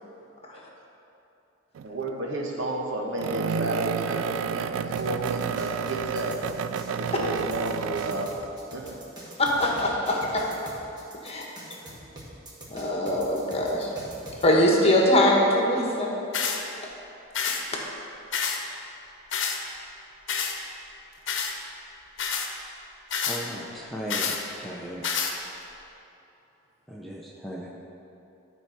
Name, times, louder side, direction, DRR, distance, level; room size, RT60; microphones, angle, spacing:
sound 1, 1.7-2.1 3.2-8.5, right 7 dB, 85° right, 0.3 m, -30 dB
voice 1, 1.8-6.4 6.9-8.5 8.7-9.0 11.8-12.1, right 1 dB, 70° right, 0 dB, 1.2 m, -32 dB
sound 2, 5.0-14.5, right 1 dB, 20° right, 1.7 m, -44 dB
voice 2, 9.4-10.4 11.2-11.4 12.7-13.9 14.4-16.1 17.7-17.8, left 1 dB, 30° left, -2 dB, 1.3 m, -22 dB
sound 3, 16.3-16.6 17.3-17.6 18.3-18.6 19.3-19.6 20.3-20.5 21.3-21.5 22.2-22.5 23.1-23.4 24.1-24.4 25.0-25.3, left 6 dB, 65° left, 0.9 m, -28 dB
voice 3, 23.3-24.3 24.6-25.0 26.9-27.7, right 1 dB, ahead, -4 dB, 0.7 m, -37 dB
12.5 x 4.5 x 5.8 m, 2.9 s
head